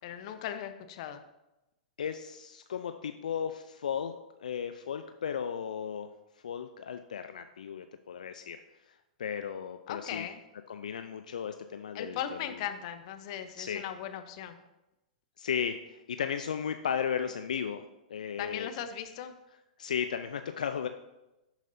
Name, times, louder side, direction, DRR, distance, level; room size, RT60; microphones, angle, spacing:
voice 1, 0.0-1.2 9.9-10.4 11.9-14.5 18.4-19.3, left 10 dB, 50° left, 9 dB, 0.9 m, -38 dB
voice 2, 2.0-4.1 4.4-6.1 6.4-8.6 9.2-10.3 10.7-12.6 13.6-13.8 15.4-17.8 18.1-18.7 19.8-20.9, left 7 dB, 70° left, 8 dB, 0.5 m, -35 dB
11.5 x 7.3 x 2.7 m, 0.96 s
hypercardioid pair, 105°, 4 cm